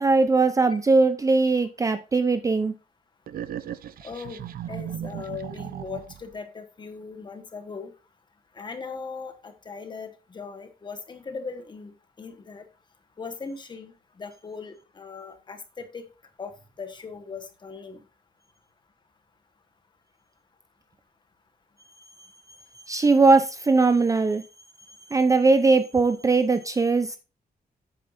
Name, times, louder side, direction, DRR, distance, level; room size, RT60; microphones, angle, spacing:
voice 1, 0.0-2.7 22.9-24.4 25.1-27.2, right 3 dB, 20° right, 10 dB, 0.5 m, -20 dB
sound 1, 3.3-6.3, right 10 dB, 70° right, 0.6 m, -36 dB
voice 2, 4.0-4.4 4.7-7.9 8.5-12.6 13.2-16.1 16.4-16.5 16.8-18.0, left 5 dB, 30° left, 7 dB, 1.4 m, -39 dB
10.5 x 8.7 x 2.6 m, 0.31 s
wide cardioid pair, 180°, 16 cm